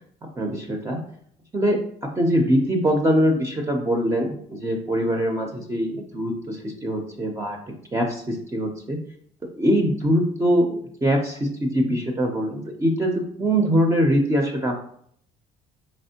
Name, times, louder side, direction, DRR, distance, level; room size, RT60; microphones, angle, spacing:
voice 1, 0.4-1.0 1.5-1.8 2.2-9.0 9.6-13.1 13.4-14.8, equal, 15° right, 2 dB, 0.5 m, -23 dB
4.2 x 3.0 x 2.8 m, 0.63 s
cardioid pair, 110°, 17 cm